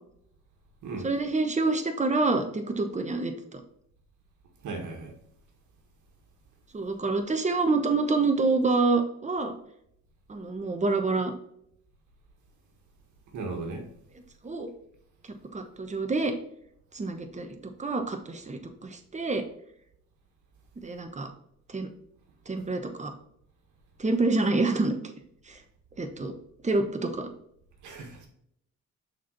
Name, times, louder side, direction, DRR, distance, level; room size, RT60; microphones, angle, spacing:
voice 1, 1.0-3.6 6.7-9.6 10.3-11.3 14.4-14.7 15.5-16.3 16.9-17.5 17.8-19.4 20.8-21.3 21.7-21.9 22.5-23.1 24.0-24.9 25.5-25.6 26.0-26.3 26.6-27.3, right 3 dB, 25° right, 1.1 m, -27 dB
voice 2, 4.6-5.1 13.3-13.9 27.8-28.3, right 3 dB, 75° right, 1.6 m, -36 dB
5.9 x 4.6 x 4.0 m
cardioid pair, 90°, 30 cm